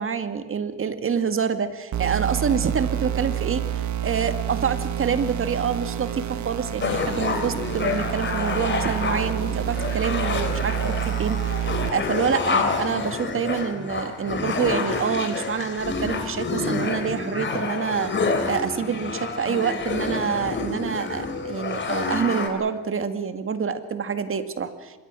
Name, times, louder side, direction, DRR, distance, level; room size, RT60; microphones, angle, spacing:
voice 1, 0.0-25.0, right 6 dB, 45° right, 9 dB, 2.0 m, -27 dB
sound 1, 1.9-11.9, right 11 dB, 70° right, 1.7 m, -28 dB
sound 2, 6.8-22.5, left 4 dB, 40° left, 3.6 m, -28 dB
25.0 x 21.5 x 6.3 m, 1.2 s
cardioid pair, 90°, 30 cm